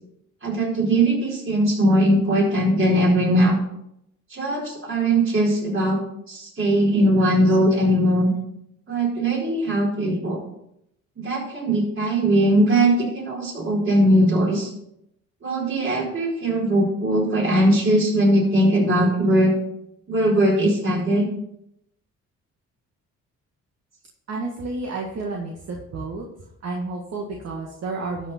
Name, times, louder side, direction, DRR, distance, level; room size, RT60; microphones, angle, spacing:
voice 1, 0.4-3.6 4.3-6.0 6.3-8.3 8.9-10.4 11.2-14.7 15.4-19.5 20.1-21.3, right 1 dB, 40° right, -3 dB, 4.6 m, -20 dB
voice 2, 24.3-26.2 26.6-28.3, right 3 dB, 60° right, 0 dB, 1.8 m, -31 dB
12.5 x 6.1 x 4.3 m, 0.78 s
cardioid pair, 90°, 30 cm